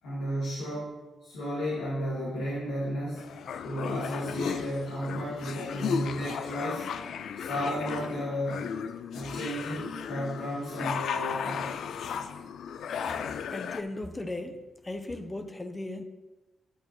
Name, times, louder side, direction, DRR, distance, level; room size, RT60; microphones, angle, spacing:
voice 1, 0.0-0.9 1.2-3.3 3.6-6.9 7.4-8.7 9.1-11.7, equal, 90° left, -8 dB, 2.2 m, -33 dB
sound 1, 3.2-13.8, left 7 dB, 75° left, 0.4 m, -35 dB
voice 2, 13.5-16.0, left 2 dB, 25° left, 7 dB, 0.9 m, -37 dB
10.0 x 8.3 x 3.1 m, 1.2 s
supercardioid pair, 45°, 0 cm